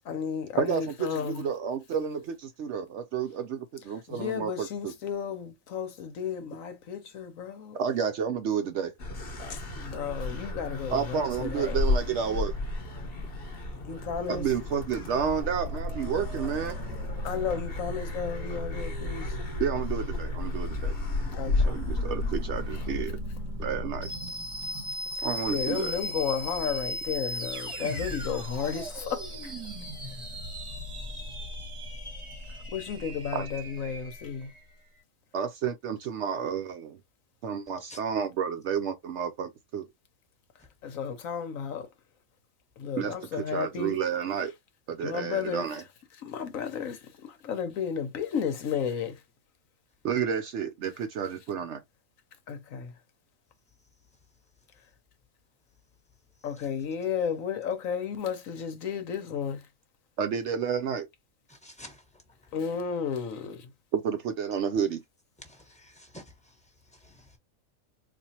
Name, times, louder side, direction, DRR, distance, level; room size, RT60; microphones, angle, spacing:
voice 1, 0.0-1.5 4.1-7.8 9.5-11.8 12.9-13.1 13.9-14.5 17.2-19.4 21.4-21.7 25.1-29.5 32.7-34.5 40.8-41.9 42.8-44.0 45.0-45.6 46.2-49.2 52.5-52.9 56.4-59.7 62.5-63.7, left 7 dB, 75° left, 1.2 m, -33 dB
voice 2, 0.6-4.9 7.7-8.9 10.9-12.5 14.3-16.8 19.6-21.0 21.7-23.2 23.6-24.1 25.2-26.0 33.3-33.5 35.3-37.0 37.4-39.9 43.0-44.5 44.9-45.8 50.0-51.8 60.2-61.1 63.9-65.0, right 7 dB, 65° right, 0.8 m, -30 dB
sound 1, 9.0-23.0, left 3 dB, 45° left, 1.2 m, -33 dB
sound 2, 15.4-34.7, left 1 dB, 25° right, 1.1 m, -36 dB
voice 3, 61.5-62.2 65.4-67.4, left 1 dB, 5° left, 1.2 m, -50 dB
4.2 x 2.5 x 2.8 m
omnidirectional pair, 1.4 m